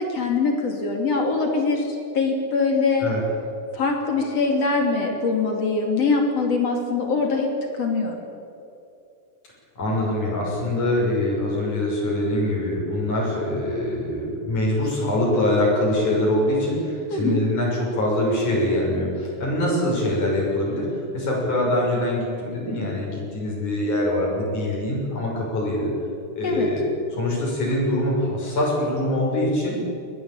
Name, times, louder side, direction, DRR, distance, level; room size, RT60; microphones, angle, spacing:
voice 1, 0.1-3.1 3.7-8.2 17.1-17.4 26.4-26.7, left 4 dB, 55° left, 2 dB, 3.8 m, -23 dB
voice 2, 9.8-20.9 21.1-25.9 26.4-26.8 27.1-29.8, left 1 dB, 80° left, -4 dB, 7.7 m, -23 dB
23.0 x 18.0 x 8.9 m, 2.6 s
omnidirectional pair, 3.5 m